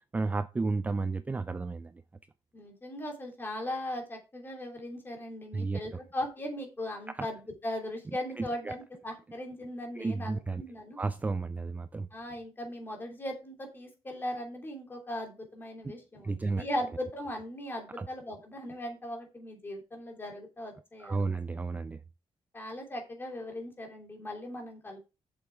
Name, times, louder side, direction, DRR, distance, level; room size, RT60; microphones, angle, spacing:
voice 1, 0.1-1.9 5.5-5.8 7.1-7.3 8.4-8.7 10.0-10.6 11.0-12.1 16.2-16.6 18.0-18.1 21.0-22.0, right 3 dB, 15° right, 0.4 m, -32 dB
voice 2, 2.5-11.0 12.1-21.4 22.5-25.0, left 1 dB, 20° left, 3.0 m, -38 dB
7.1 x 7.1 x 4.7 m
wide cardioid pair, 150°, 10 cm